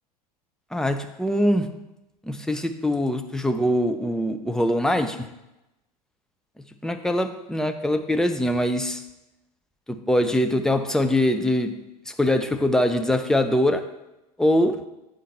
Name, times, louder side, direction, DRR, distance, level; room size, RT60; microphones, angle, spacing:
voice 1, 0.7-1.7 2.2-5.3 6.8-9.0 9.9-11.8 12.1-13.9 14.4-14.9, left 1 dB, 5° left, 0.5 m, -23 dB
9.2 x 5.1 x 4.4 m
figure-of-eight pair, 80°, 21 cm